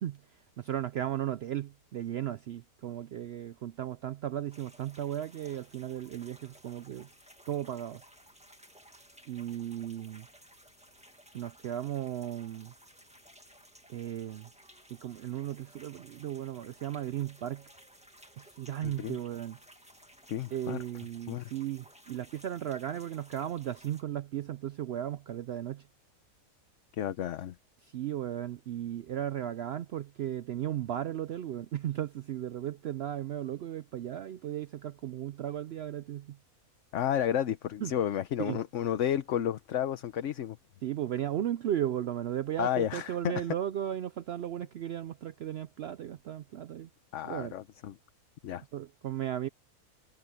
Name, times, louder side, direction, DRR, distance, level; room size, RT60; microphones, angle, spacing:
voice 1, 0.0-7.1 7.5-8.0 9.3-10.3 11.3-12.7 13.9-14.5 14.9-17.6 18.4-19.6 20.5-25.9 27.8-36.4 37.8-37.9 38.4-38.6 40.8-46.9 47.2-47.5 48.7-49.5, right 11 dB, 75° right, 0.6 m, -35 dB
sound 1, 4.5-24.0, equal, 5° right, 1.7 m, -57 dB
voice 2, 18.8-19.2 20.3-20.8 21.3-21.5 27.0-27.5 36.9-40.6 42.6-43.3 47.1-47.9 48.4-48.6, left 10 dB, 60° left, 1.0 m, -31 dB
omnidirectional pair, 1.6 m